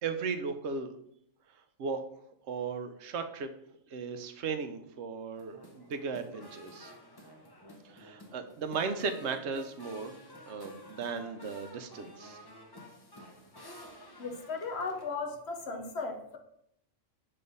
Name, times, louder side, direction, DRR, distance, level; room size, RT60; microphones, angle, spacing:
voice 1, 0.0-0.9 1.8-2.0 2.5-3.5 3.9-6.9 7.8-10.2 10.4-12.4, right 5 dB, 65° right, 8 dB, 0.9 m, -36 dB
sound 1, 5.4-15.2, equal, 25° left, 0.5 m, -51 dB
voice 2, 14.2-16.4, left 4 dB, 60° left, 5 dB, 1.0 m, -36 dB
5.6 x 3.3 x 5.3 m, 0.72 s
omnidirectional pair, 1.3 m